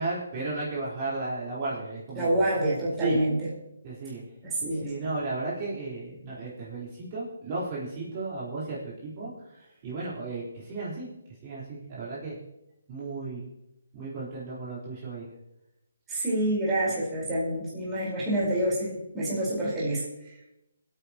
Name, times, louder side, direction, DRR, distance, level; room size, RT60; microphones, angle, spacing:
voice 1, 0.0-2.5 3.0-3.2 3.8-4.2 4.6-11.1 11.4-12.4 12.9-13.5 13.9-15.2, right 3 dB, 30° right, -8 dB, 4.3 m, -34 dB
voice 2, 2.1-3.5 4.4-4.9 16.1-20.0, right 1 dB, 10° right, -7 dB, 4.7 m, -27 dB
25.5 x 9.0 x 3.1 m, 0.89 s
hypercardioid pair, 160°, 0 cm